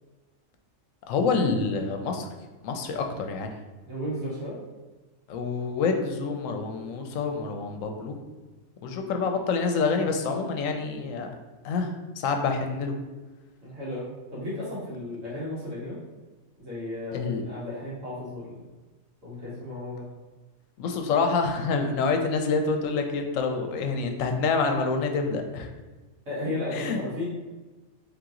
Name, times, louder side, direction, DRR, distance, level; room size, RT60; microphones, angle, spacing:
voice 1, 1.1-2.3 2.6-3.5 5.3-8.2 8.8-11.3 11.6-11.9 12.2-12.9 17.1-17.4 20.8-25.7 26.7-27.0, left 4 dB, 80° left, 4 dB, 1.0 m, -27 dB
voice 2, 3.9-4.6 13.6-16.0 16.6-18.6 19.2-20.0 26.3-27.3, left 1 dB, 70° right, -8 dB, 1.9 m, -34 dB
3.6 x 2.9 x 3.7 m, 1.2 s
omnidirectional pair, 1.3 m